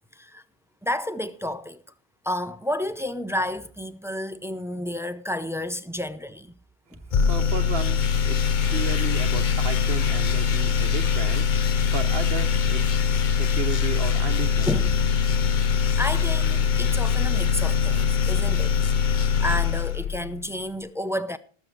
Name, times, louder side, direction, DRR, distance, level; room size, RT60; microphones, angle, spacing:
voice 1, 0.1-0.4 0.8-1.8 2.2-6.5 6.9-7.0 14.7-15.1 15.7-18.7 19.4-21.4, left 1 dB, 5° right, 0.5 m, -31 dB
sound 1, 7.1-20.5, left 7 dB, 55° left, 0.8 m, -22 dB
voice 2, 7.3-13.0 13.3-14.7, right 7 dB, 70° right, 1.0 m, -34 dB
19.0 x 6.9 x 4.5 m
omnidirectional pair, 1.0 m